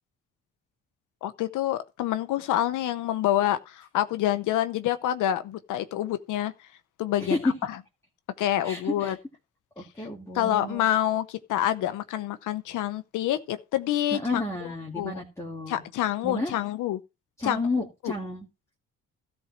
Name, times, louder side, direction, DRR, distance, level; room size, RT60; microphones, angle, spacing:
voice 1, 1.2-6.5 7.0-7.5 8.4-9.2 10.0-10.1 10.3-14.4 14.9-15.1 15.7-17.0 17.4-17.6 18.0-18.1, left 12 dB, 85° left, 0.9 m, -27 dB
voice 2, 8.6-9.2 9.8-10.8 14.1-15.8 16.2-16.5 17.4-18.5, left 2 dB, 10° left, 2.0 m, -32 dB
13.5 x 4.5 x 5.9 m
cardioid pair, 90°, 30 cm